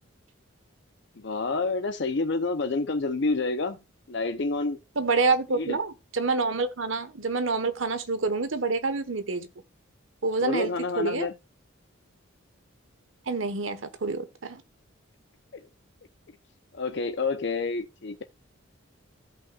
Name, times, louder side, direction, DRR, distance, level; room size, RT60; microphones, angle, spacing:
voice 1, 1.2-3.8 4.1-4.8 5.6-5.8 10.4-11.3 15.5-15.6 16.7-18.2, left 3 dB, 55° left, 0.6 m, -28 dB
voice 2, 5.0-9.5 10.2-11.3 13.3-14.6, right 3 dB, 70° right, 1.1 m, -27 dB
16.0 x 5.5 x 2.3 m
head